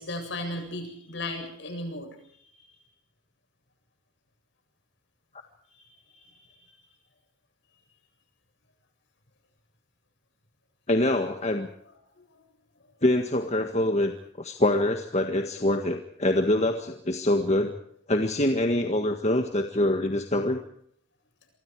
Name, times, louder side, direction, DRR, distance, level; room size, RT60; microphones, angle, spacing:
voice 1, 0.0-2.1 2.4-2.5 6.4-6.5 12.1-12.4, left 1 dB, 60° left, 5 dB, 7.9 m, -35 dB
voice 2, 10.9-11.7 13.0-14.1 14.4-17.7 18.1-20.6, left 1 dB, 35° left, 5 dB, 1.7 m, -25 dB
27.0 x 24.0 x 4.8 m, 0.67 s
head